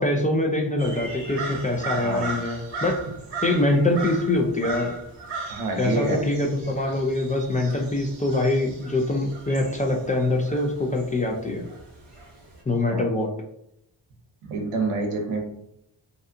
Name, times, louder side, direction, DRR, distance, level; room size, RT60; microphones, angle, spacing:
voice 1, 0.0-3.0 3.4-4.9 5.8-11.7 12.7-13.3, left 2 dB, 15° left, 1 dB, 0.3 m, -24 dB
sound 1, 0.8-12.6, right 3 dB, 55° right, 1.0 m, -37 dB
voice 2, 1.9-2.4 5.5-6.2 12.9-13.1 14.4-15.4, right 3 dB, 90° right, 3 dB, 0.7 m, -28 dB
2.6 x 2.3 x 2.5 m, 0.77 s
cardioid pair, 55°, 49 cm